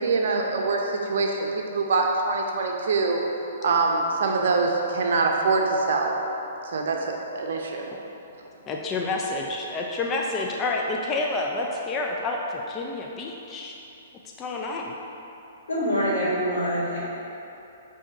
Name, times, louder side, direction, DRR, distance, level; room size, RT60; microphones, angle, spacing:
voice 1, 0.0-3.2 3.6-6.2 6.7-7.9, right 3 dB, 70° right, 1 dB, 0.5 m, -24 dB
voice 2, 8.7-13.7 14.4-14.9, left 2 dB, 25° left, 0 dB, 0.3 m, -29 dB
voice 3, 15.7-17.0, equal, 80° left, -6 dB, 1.5 m, -25 dB
4.7 x 2.7 x 3.9 m, 2.9 s
hypercardioid pair, 135°, 0 cm